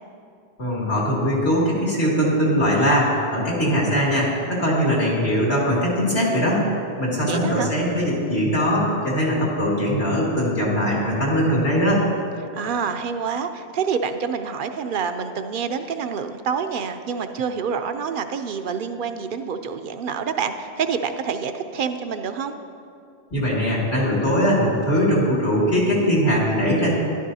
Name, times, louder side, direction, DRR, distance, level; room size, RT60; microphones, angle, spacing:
voice 1, 0.6-6.7 7.0-12.0 23.3-26.9, equal, 80° left, -5 dB, 2.7 m, -21 dB
voice 2, 7.2-7.7 12.5-22.5, right 6 dB, 60° right, 8 dB, 0.7 m, -27 dB
13.0 x 11.0 x 2.7 m, 2.4 s
omnidirectional pair, 1.1 m